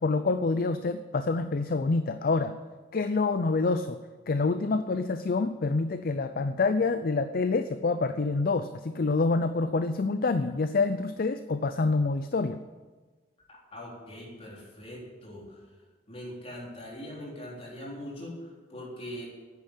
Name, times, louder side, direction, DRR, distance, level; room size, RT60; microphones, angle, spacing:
voice 1, 0.0-2.6 2.9-4.0 4.3-12.6, left 3 dB, 55° left, 11 dB, 0.5 m, -27 dB
voice 2, 13.7-15.6 16.1-19.3, left 1 dB, 35° left, -3 dB, 3.9 m, -41 dB
9.8 x 9.4 x 9.9 m, 1.3 s
head